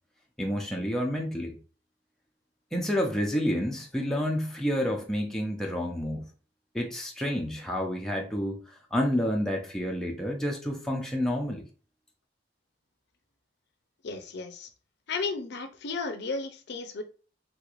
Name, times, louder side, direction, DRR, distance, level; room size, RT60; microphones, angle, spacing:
voice 1, 0.4-1.6 2.7-6.2 6.7-8.6 8.9-11.6, equal, 5° left, -1 dB, 0.5 m, -29 dB
voice 2, 14.0-14.7 15.1-17.0, left 4 dB, 65° left, 8 dB, 0.5 m, -34 dB
3.4 x 3.1 x 2.4 m, 0.36 s
head